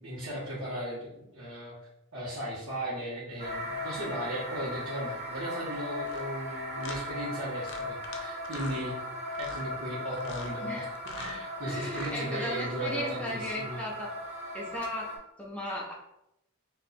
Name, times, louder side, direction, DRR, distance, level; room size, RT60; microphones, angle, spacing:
voice 1, 0.0-1.7 2.1-8.9 9.4-10.8 11.1-13.8, right 1 dB, 90° right, -11 dB, 1.2 m, -36 dB
sound 1, 3.4-15.2, left 1 dB, 30° right, 0.6 m, -38 dB
sound 2, 6.0-6.2 6.8-7.0 7.6-8.2 8.4-8.8 9.3-9.7 10.2-10.5 10.9-11.4 11.8-12.2, left 3 dB, 60° left, 0.5 m, -43 dB
voice 2, 11.6-14.1 14.5-15.1 15.4-15.9, left 1 dB, 5° left, -4 dB, 0.7 m, -36 dB
2.6 x 2.4 x 4.1 m, 0.83 s
head